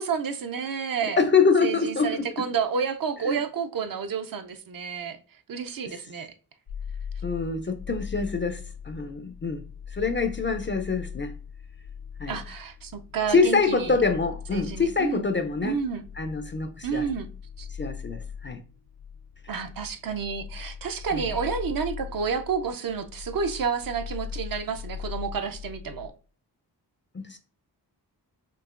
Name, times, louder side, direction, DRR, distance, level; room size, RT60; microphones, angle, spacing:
voice 1, 0.0-1.2 1.6-5.2 5.5-6.3 12.3-14.0 14.5-15.3 15.6-16.0 16.8-17.3 17.6-17.7 19.5-26.1, right 6 dB, 55° right, 0.5 m, -30 dB
voice 2, 1.2-2.5 3.2-3.3 7.2-9.6 9.9-11.3 12.2-12.4 13.3-15.8 16.2-17.1 17.8-18.6 21.1-21.3 27.1-27.4, left 4 dB, 30° left, 0.4 m, -25 dB
sound 1, 6.7-26.1, left 7 dB, 85° left, 0.8 m, -40 dB
4.6 x 2.7 x 2.4 m
wide cardioid pair, 85°, 42 cm